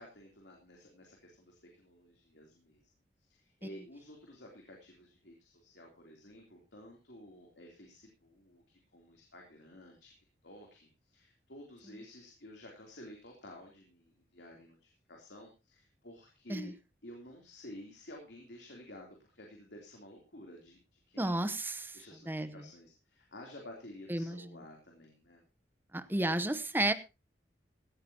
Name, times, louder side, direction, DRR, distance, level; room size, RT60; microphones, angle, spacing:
voice 1, 0.0-2.8 3.2-10.1 10.4-16.7 17.0-21.5 21.9-25.4, left 1 dB, 75° left, 3.3 m, -52 dB
voice 2, 21.2-21.9 22.3-22.6 24.1-24.4 25.9-26.9, right 1 dB, 10° right, 0.8 m, -32 dB
17.0 x 13.5 x 2.9 m
head